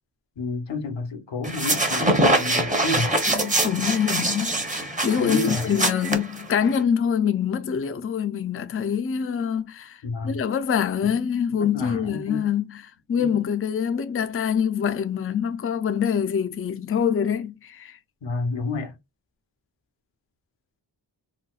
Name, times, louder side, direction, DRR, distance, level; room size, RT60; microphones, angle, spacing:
voice 1, 0.4-3.2 5.2-5.8 10.0-10.4 11.5-12.5 13.2-13.3 18.2-18.9, left 3 dB, 90° left, 0.9 m, -30 dB
sound 1, 1.4-6.8, right 1 dB, 20° right, 0.8 m, -24 dB
voice 2, 3.3-18.0, left 8 dB, 35° left, 0.4 m, -25 dB
3.9 x 2.1 x 2.3 m
wide cardioid pair, 65°, 43 cm